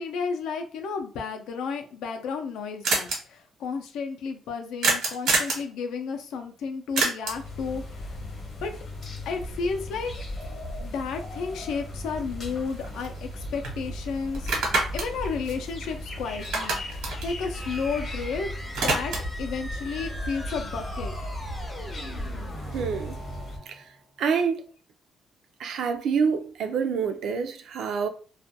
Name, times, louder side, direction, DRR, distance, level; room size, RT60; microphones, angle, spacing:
voice 1, 0.0-8.1 8.6-8.7 9.3-10.1 10.8-14.7 14.9-18.5 18.8-19.1 19.4-21.2, left 5 dB, 80° left, 0.5 m, -32 dB
sound 1, 1.9-2.0 2.2-2.3 2.5-2.6 2.8-3.2 4.8-5.7 7.0-7.5 11.7-11.8 12.2-13.3 13.6-13.8 14.3-16.1 16.4-18.2 18.5-19.4, right 3 dB, 80° right, 1.0 m, -27 dB
sound 2, 7.2-23.6, equal, 40° left, 0.8 m, -36 dB
sound 3, 17.5-24.0, left 1 dB, 10° left, 0.4 m, -41 dB
voice 2, 22.7-23.2 24.2-24.6 25.6-28.1, right 6 dB, 65° right, 0.4 m, -26 dB
2.3 x 2.2 x 2.7 m
cardioid pair, 155°, 0 cm